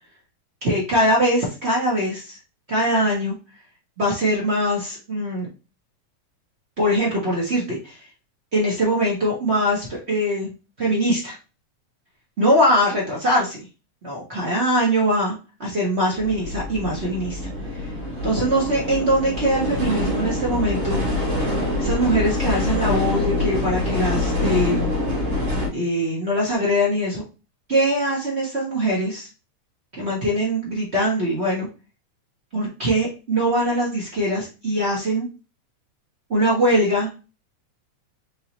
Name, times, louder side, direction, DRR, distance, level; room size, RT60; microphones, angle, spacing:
voice 1, 0.6-2.4 2.7-3.3 4.0-5.5 6.8-8.0 8.5-11.4 12.4-13.6 14.0-15.3 15.6-17.4 17.7-17.8 18.2-21.0 21.8-24.9 25.7-27.2 27.7-29.3 30.0-31.7 32.5-35.3 36.3-37.1, equal, 80° right, -4 dB, 0.6 m, -22 dB
sound 1, 16.2-25.7, left 2 dB, 45° right, 2.1 m, -25 dB
4.9 x 3.7 x 2.9 m, 0.31 s
omnidirectional pair, 3.6 m